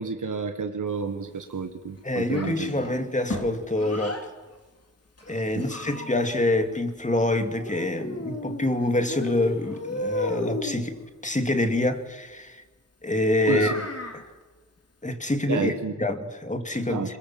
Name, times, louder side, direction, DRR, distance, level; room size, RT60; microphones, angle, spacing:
voice 1, 0.0-2.9 5.5-5.7 13.5-13.9 15.5-16.0 16.9-17.2, right 5 dB, 90° right, 1.6 m, -30 dB
voice 2, 2.0-4.2 5.3-12.6 13.0-13.8 15.0-17.2, left 1 dB, 25° left, 2.7 m, -26 dB
Child speech kid speaking, 2.3-4.3 5.2-6.4 7.6-8.7 9.1-10.8 13.4-14.2, left 2 dB, 55° left, 3.7 m, -33 dB
26.5 x 22.5 x 7.6 m
wide cardioid pair, 60°, 30 cm